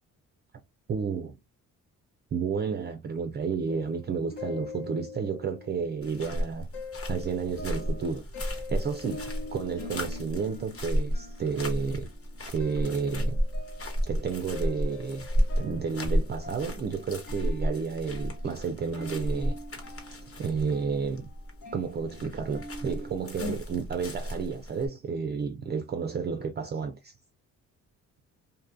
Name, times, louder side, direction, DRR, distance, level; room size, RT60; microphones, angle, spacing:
voice 1, 0.9-1.4 2.3-6.7 7.1-12.1 12.5-13.4 14.0-15.3 15.6-19.6 20.4-21.3 21.7-27.1, right 5 dB, 35° right, 0.4 m, -31 dB
sound 1, 3.7-6.4 6.7-23.6, left 2 dB, 65° left, 0.8 m, -44 dB
sound 2, 6.0-24.9, equal, 45° left, 1.1 m, -33 dB
2.6 x 2.4 x 2.5 m
cardioid pair, 95°, 33 cm